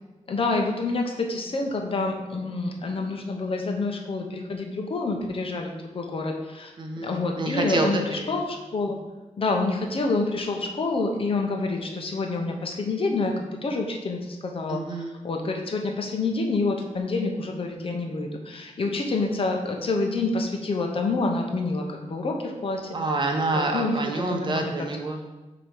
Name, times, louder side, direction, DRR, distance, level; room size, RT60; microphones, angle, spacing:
voice 1, 0.3-6.7 7.0-9.0 9.4-14.8 15.2-22.8 23.5-24.9, left 3 dB, 50° left, 2 dB, 0.9 m, -27 dB
voice 2, 6.8-8.3 14.7-15.2 22.9-25.2, right 2 dB, 40° right, 3 dB, 0.8 m, -28 dB
7.8 x 3.0 x 5.3 m, 1.1 s
wide cardioid pair, 155°, 12 cm